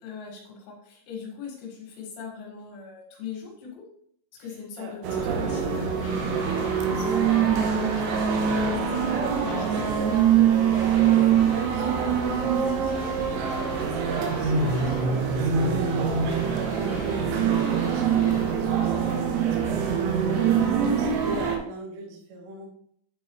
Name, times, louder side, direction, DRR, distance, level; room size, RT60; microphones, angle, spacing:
voice 1, 0.0-3.9 4.4-8.0 8.5-9.0 9.4-9.8 12.6-12.9, left 6 dB, 85° left, -1 dB, 4.8 m, -40 dB
sound 1, 5.0-21.6, right 7 dB, 85° right, 2.4 m, -24 dB
sound 2, 6.0-6.9 7.2-8.3 9.4-10.4 10.7-11.7 12.9-13.8 14.1-15.1 16.3-17.2 17.6-18.6, left 4 dB, 65° left, 3.2 m, -46 dB
voice 2, 8.9-12.5 12.8-15.8 16.5-22.7, right 3 dB, 70° right, 0 dB, 2.9 m, -39 dB
12.0 x 4.0 x 3.2 m, 0.65 s
omnidirectional pair, 5.9 m